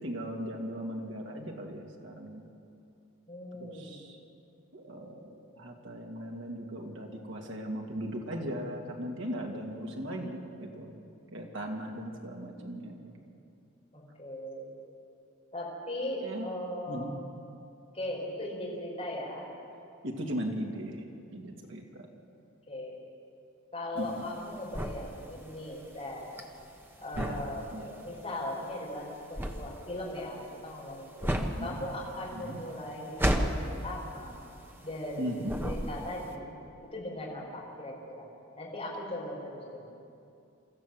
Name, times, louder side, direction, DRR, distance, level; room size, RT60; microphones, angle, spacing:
voice 1, 0.0-2.5 3.6-4.2 4.7-11.0 11.3-13.0 16.2-16.5 16.9-17.1 20.0-21.0 21.3-22.1 24.0-24.3 27.2-27.9 31.3-31.8 32.3-32.6 35.2-35.5, equal, 60° right, 0 dB, 2.5 m, -38 dB
voice 2, 3.3-4.1 13.9-14.7 15.5-17.5 17.9-19.5 22.7-23.0 23.7-26.2 27.0-34.4 34.8-36.5 36.9-38.3 38.6-39.9, left 1 dB, 30° left, -4 dB, 4.8 m, -39 dB
sound 1, 24.0-35.2 35.4-36.3, equal, 10° right, 1.1 m, -34 dB
24.5 x 14.5 x 7.8 m, 2.6 s
head